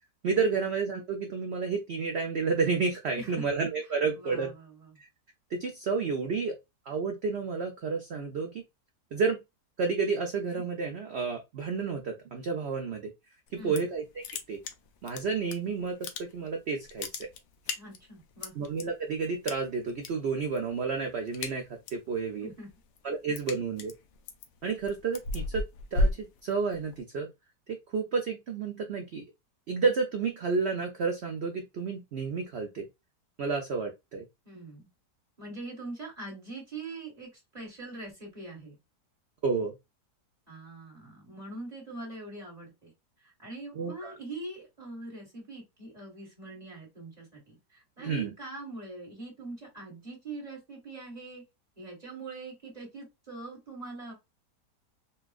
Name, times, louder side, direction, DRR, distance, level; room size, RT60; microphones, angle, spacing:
voice 1, 0.2-4.5 5.0-5.1 5.5-6.6 6.9-8.6 9.1-9.4 9.8-13.1 13.5-14.0 14.5-14.6 15.0-17.3 18.6-22.5 23.0-23.9 24.6-25.6 25.9-27.3 27.9-29.2 29.7-32.9 33.4-34.2 39.4-39.7 43.8-44.1 48.0-48.3, right 4 dB, 85° right, 3 dB, 0.5 m, -30 dB
voice 2, 4.2-5.0 13.6-13.9 17.8-18.5 22.4-22.7 34.4-34.9 35.4-38.8 40.5-42.9 43.2-51.4 51.8-54.1, right 2 dB, 25° right, -4 dB, 1.5 m, -43 dB
sound 1, 13.5-14.0 14.2-15.6 15.9-16.5 16.8-18.8 19.5-20.1 20.4-20.7 21.0-22.1 22.5-27.0, left 2 dB, 80° left, 1.2 m, -33 dB
4.2 x 2.3 x 2.3 m, 0.22 s
omnidirectional pair, 1.8 m